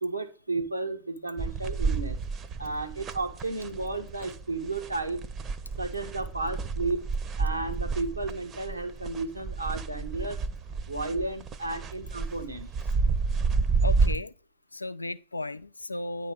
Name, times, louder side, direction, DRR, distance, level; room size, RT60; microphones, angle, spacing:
voice 1, 0.0-2.2 2.6-5.2 5.8-7.1 7.4-10.4 10.9-12.7, right 3 dB, 80° right, 0.9 m, -33 dB
sound 1, 1.4-14.2, right 4 dB, 30° right, 0.6 m, -30 dB
voice 2, 13.8-14.3 14.7-16.3, left 2 dB, 80° left, 0.3 m, -34 dB
9.6 x 3.3 x 6.3 m
figure-of-eight pair, 90°, 0 cm